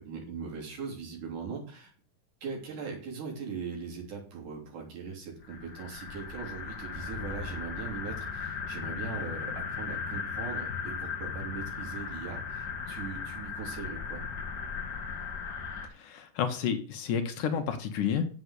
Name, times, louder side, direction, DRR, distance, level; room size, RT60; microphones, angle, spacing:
voice 1, 0.0-1.9 2.4-14.2, right 5 dB, 65° right, -1 dB, 4.8 m, -40 dB
sound 1, 5.4-15.9, left 6 dB, 45° left, 1.4 m, -37 dB
voice 2, 15.9-18.2, left 7 dB, 70° left, 7 dB, 2.6 m, -30 dB
8.1 x 7.8 x 8.3 m, 0.41 s
omnidirectional pair, 3.9 m